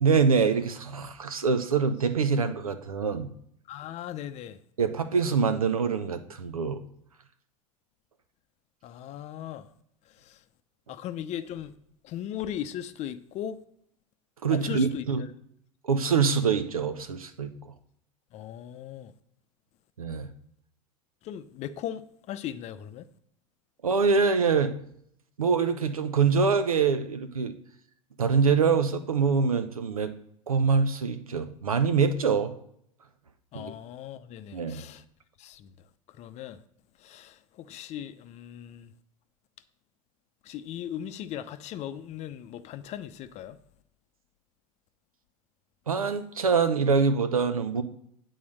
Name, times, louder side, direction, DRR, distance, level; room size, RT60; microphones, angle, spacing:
voice 1, 0.0-3.3 4.8-6.8 14.4-15.2 15.8-17.5 20.0-20.3 23.8-24.7 25.4-27.5 28.2-30.1 30.5-32.5 33.5-33.7 34.5-34.8 45.9-47.8, right 5 dB, 90° right, 0.7 m, -24 dB
voice 2, 3.7-4.6 8.8-9.7 10.2-10.4 10.9-11.8 12.0-13.6 14.5-15.1 18.3-19.1 21.2-23.1 33.5-35.0 35.4-35.7 36.1-36.6 37.0-38.9 40.4-43.6, left 10 dB, 40° left, 0.6 m, -38 dB
8.5 x 3.9 x 6.4 m
hypercardioid pair, 85°, 18 cm